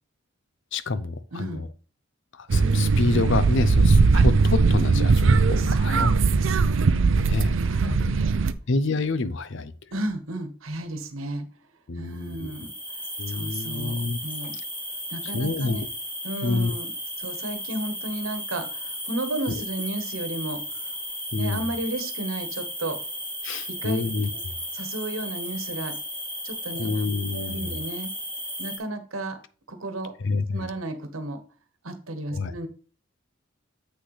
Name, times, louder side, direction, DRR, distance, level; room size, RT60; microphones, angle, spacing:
voice 1, 0.7-1.7 2.3-6.1 7.2-7.5 7.8-8.1 8.7-9.7 11.9-12.5 13.2-14.2 15.2-15.9 16.4-16.7 19.5-19.6 21.3-21.7 23.4-24.5 26.8-27.8 30.2-30.7 32.3-32.5, left 3 dB, 65° left, 14 dB, 0.6 m, -28 dB
voice 2, 1.3-1.6 5.6-6.8 7.2-8.3 9.9-11.5 11.9-13.0 13.3-14.6 15.1-15.8 16.2-16.9 17.2-20.9 21.4-23.0 23.7-24.0 24.7-26.0 26.4-26.9 27.3-28.1 28.6-29.4 29.7-30.1 30.5-31.4 31.8-32.7, right 1 dB, 90° right, 8 dB, 1.3 m, -33 dB
sound 1, 2.5-8.5, right 4 dB, 65° right, 0.5 m, -20 dB
sound 2, 12.2-28.8, equal, 10° left, 2.2 m, -35 dB
8.0 x 6.2 x 3.2 m, 0.39 s
head